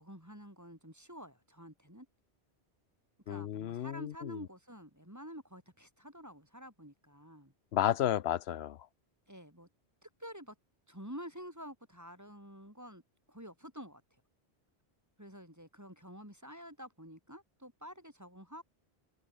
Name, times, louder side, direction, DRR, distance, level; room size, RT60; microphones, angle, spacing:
voice 1, 0.0-2.1 3.3-7.5 9.3-9.7 10.0-10.5 10.9-13.0 13.3-14.2 15.2-18.6, equal, 15° right, 6.1 m, -49 dB
voice 2, 3.3-4.4 7.7-8.8, left 11 dB, 75° left, 0.9 m, -32 dB
omnidirectional pair, 1.1 m